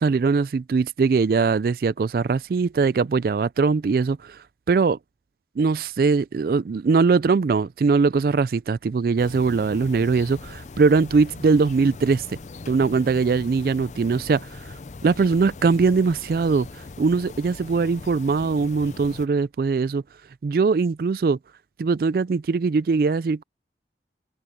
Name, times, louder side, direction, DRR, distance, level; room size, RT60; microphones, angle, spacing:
voice 1, 0.0-4.4 4.7-5.0 5.6-12.4 12.7-14.6 15.0-20.0 20.4-21.4 21.8-23.4, right 4 dB, 55° right, 0.3 m, -21 dB
sound 1, 9.2-19.3, left 3 dB, 40° left, 0.5 m, -40 dB
head